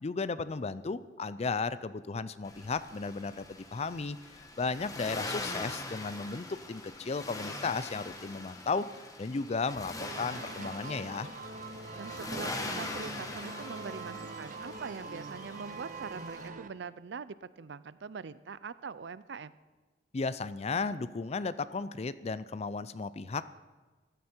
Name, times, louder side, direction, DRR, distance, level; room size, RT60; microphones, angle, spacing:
voice 1, 0.0-4.2 4.6-8.9 9.2-11.3 20.1-23.5, left 4 dB, 35° left, 16 dB, 0.5 m, -34 dB
Accelerating revving vroom, 2.4-16.5, left 2 dB, 20° left, 1.3 m, -42 dB
sound 1, 10.0-16.7, right 3 dB, 45° right, 0.9 m, -43 dB
voice 2, 11.9-19.5, right 5 dB, 75° right, 16 dB, 0.5 m, -43 dB
15.0 x 13.0 x 4.5 m, 1.3 s
head